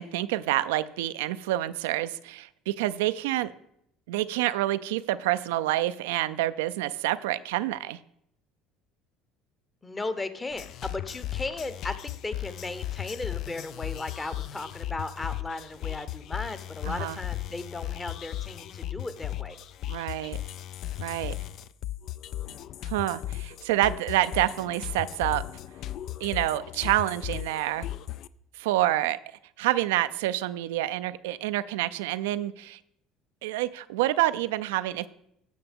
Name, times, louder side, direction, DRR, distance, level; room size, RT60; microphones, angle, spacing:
voice 1, 0.0-3.5 4.1-8.0 16.9-17.2 19.9-20.4 21.0-21.3 22.8-25.4 26.2-27.9 28.5-29.2 29.6-32.8 33.4-35.1, right 15 dB, 80° right, 14 dB, 0.4 m, -27 dB
voice 2, 9.8-19.6, left 2 dB, 20° left, 12 dB, 0.9 m, -36 dB
sound 1, 10.5-28.3, left 13 dB, 60° left, 0.3 m, -36 dB
15.0 x 5.7 x 3.6 m, 0.75 s
hypercardioid pair, 75°, 0 cm